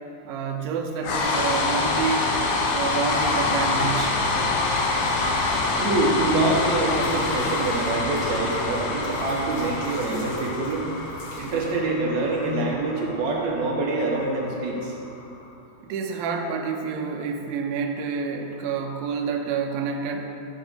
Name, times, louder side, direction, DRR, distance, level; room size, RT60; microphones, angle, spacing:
voice 1, 0.2-2.3 2.7-4.2 15.8-20.3, right 6 dB, 80° right, 3 dB, 2.4 m, -28 dB
sound 1, 1.0-15.1, left 3 dB, 75° left, 2.0 m, -26 dB
sound 2, 4.6-6.6 6.9-11.8, left 1 dB, 40° left, 1.9 m, -48 dB
voice 2, 5.8-10.8 11.4-15.0, right 2 dB, 65° right, -3 dB, 2.1 m, -25 dB
11.5 x 4.7 x 5.5 m, 2.8 s
omnidirectional pair, 4.3 m